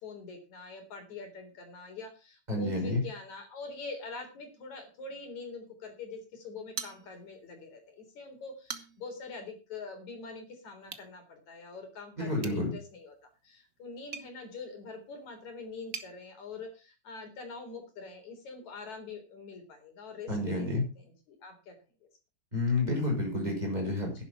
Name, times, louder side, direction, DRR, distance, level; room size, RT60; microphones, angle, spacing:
voice 1, 0.0-13.1 13.4-20.7 21.0-21.7, left 4 dB, 70° left, 5 dB, 5.2 m, -44 dB
voice 2, 2.5-3.0 12.2-12.7 20.3-20.8 22.5-24.2, left 2 dB, 15° right, 0 dB, 6.6 m, -30 dB
sound 1, 6.7-7.5 7.9-8.0 8.5-9.2 10.8-11.1 12.4-16.1, right 6 dB, 45° right, 1.1 m, -44 dB
11.0 x 10.5 x 6.0 m, 0.32 s
omnidirectional pair, 3.3 m